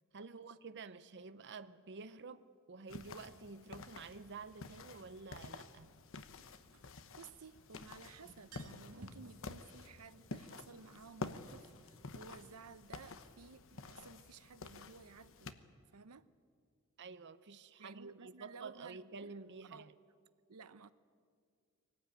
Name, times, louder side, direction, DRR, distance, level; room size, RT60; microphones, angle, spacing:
voice 1, 0.1-6.0 8.2-8.3 17.0-19.9, right 4 dB, 55° right, 0.7 m, -50 dB
sound 1, 2.9-15.5, left 3 dB, 65° left, 1.1 m, -50 dB
sound 2, 3.9-4.0 6.4-7.7 8.0-8.1 8.3-9.3, right 2 dB, 75° right, 2.2 m, -55 dB
voice 2, 7.2-15.5 15.9-16.3 17.8-19.4 19.7-19.9 20.5-20.9, right 5 dB, 90° right, 0.8 m, -55 dB
23.5 x 18.5 x 9.3 m
head